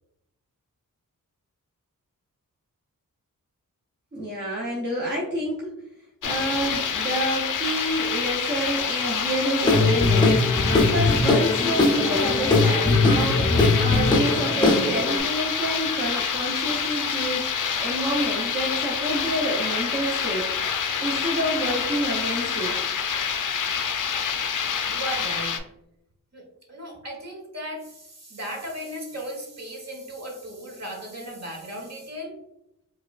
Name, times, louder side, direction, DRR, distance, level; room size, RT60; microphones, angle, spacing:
voice 1, 4.1-5.7 6.2-10.4 10.8-17.5 17.8-20.5 21.0-22.7, right 1 dB, 30° right, -4 dB, 0.7 m, -28 dB
sound 1, 6.2-25.6, left 6 dB, 65° left, 0.5 m, -27 dB
Guitar / Drum, 9.6-15.2, left 2 dB, 15° left, 0.5 m, -20 dB
voice 2, 24.9-25.6 26.3-32.3, equal, 50° right, -1 dB, 1.1 m, -36 dB
4.7 x 2.3 x 2.3 m, 0.83 s
wide cardioid pair, 105°, 34 cm